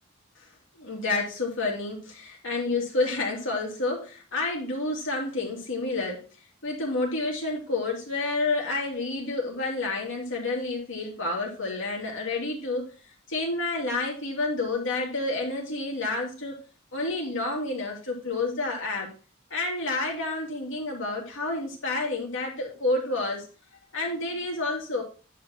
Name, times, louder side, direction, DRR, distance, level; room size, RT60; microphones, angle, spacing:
voice 1, 0.8-6.3 6.6-12.9 13.3-16.6 16.9-19.1 19.5-23.5 23.9-25.0, left 2 dB, 65° left, -1 dB, 2.9 m, -29 dB
9.6 x 5.0 x 4.4 m, 0.36 s
head